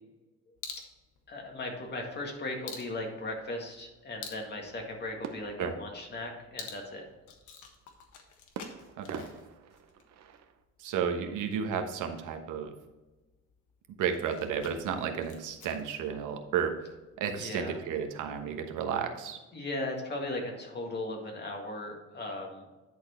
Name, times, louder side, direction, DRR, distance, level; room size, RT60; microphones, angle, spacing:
sound 1, 0.5-18.6, left 5 dB, 75° left, 1.4 m, -51 dB
voice 1, 1.3-7.1 17.3-17.8 19.5-22.6, left 2 dB, 35° left, 1 dB, 1.9 m, -37 dB
sound 2, 5.2-6.8 8.5-10.6, right 6 dB, 60° right, 0.8 m, -45 dB
voice 2, 10.8-12.7 14.0-16.7 17.2-19.4, right 7 dB, 75° right, 5 dB, 1.2 m, -32 dB
10.5 x 4.5 x 4.4 m, 1.1 s
cardioid pair, 125°, 31 cm